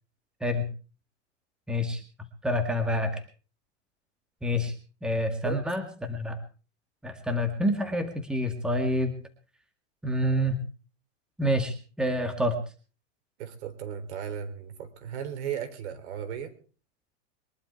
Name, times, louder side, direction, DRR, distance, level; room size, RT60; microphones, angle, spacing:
voice 1, 1.7-2.0 2.4-3.2 4.4-4.7 5.0-6.4 7.0-9.1 10.0-10.6 11.4-12.6, equal, ahead, 6 dB, 2.0 m, -27 dB
voice 2, 13.4-16.5, right 8 dB, 65° right, 8 dB, 3.8 m, -35 dB
23.0 x 11.5 x 4.7 m, 0.38 s
supercardioid pair, 145°, 36 cm